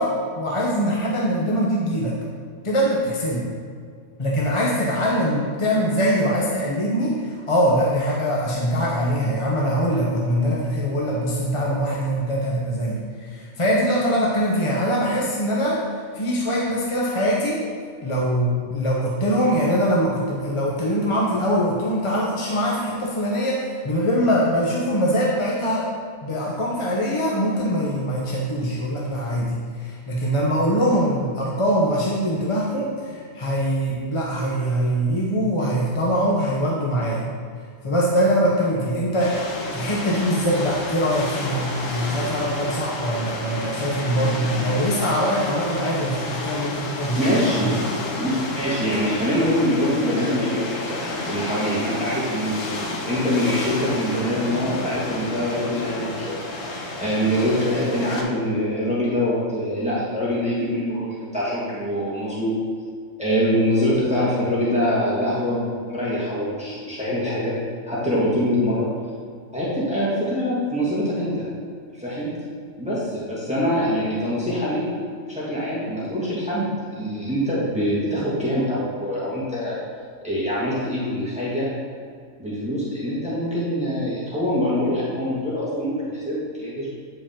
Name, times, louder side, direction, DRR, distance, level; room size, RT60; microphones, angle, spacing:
voice 1, 0.0-2.1 2.6-3.5 4.2-15.8 16.1-17.6 18.0-25.9 26.2-37.2 37.8-39.4 39.7-47.2 47.6-47.8, equal, 30° left, -4 dB, 0.8 m, -23 dB
sound 1, 39.2-58.2, left 2 dB, 75° left, 1.3 m, -31 dB
voice 2, 47.2-47.7 48.1-51.0 51.3-52.7 53.1-56.3 57.0-62.6 63.2-67.5 67.9-68.9 69.5-71.4 72.0-72.3 72.8-74.8 75.3-79.7 80.2-81.7 82.4-86.9, equal, 5° right, -8 dB, 1.7 m, -24 dB
8.9 x 5.0 x 3.7 m, 2.1 s
omnidirectional pair, 1.4 m